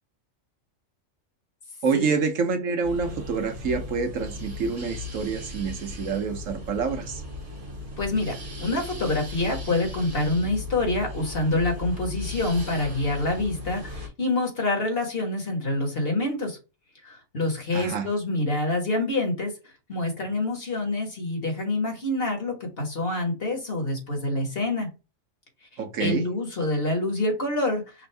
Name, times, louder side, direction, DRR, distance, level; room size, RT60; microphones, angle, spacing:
voice 1, 1.8-7.2 17.7-18.1 25.8-26.2, right 5 dB, 90° right, 1.3 m, -27 dB
sound 1, 2.8-14.1, left 2 dB, 60° right, 1.6 m, -37 dB
voice 2, 8.0-8.4 8.6-16.6 17.0-19.5 19.9-24.9 26.0-27.8, left 2 dB, 50° left, 1.8 m, -26 dB
5.8 x 2.6 x 3.4 m
omnidirectional pair, 1.3 m